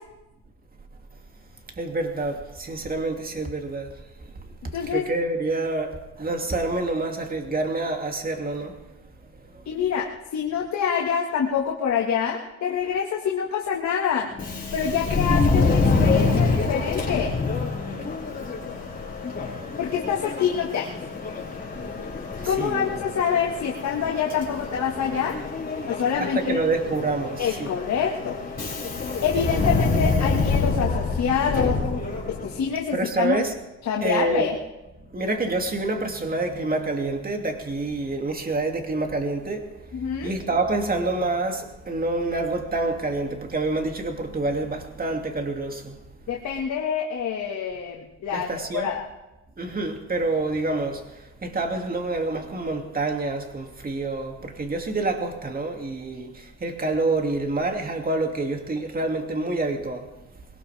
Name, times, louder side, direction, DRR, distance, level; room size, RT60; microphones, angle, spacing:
voice 1, 1.8-3.9 4.9-8.7 19.5-19.7 22.6-22.9 26.2-27.7 32.9-33.5 34.0-34.5 35.1-39.7 40.2-46.0 48.3-48.9 49.6-51.0 51.4-60.1, right 2 dB, 30° right, 2.7 m, -27 dB
voice 2, 4.7-5.0 9.7-14.3 14.7-17.3 19.8-20.9 22.5-25.4 25.9-26.6 27.4-28.4 29.2-31.8 32.3-33.4 33.9-34.6 39.9-40.3 46.3-49.0, left 7 dB, 65° left, 2.0 m, -26 dB
Subway metro underground, 14.3-32.7, left 3 dB, 30° left, 5.0 m, -26 dB
21.5 x 18.5 x 3.6 m
cardioid pair, 90°, 30 cm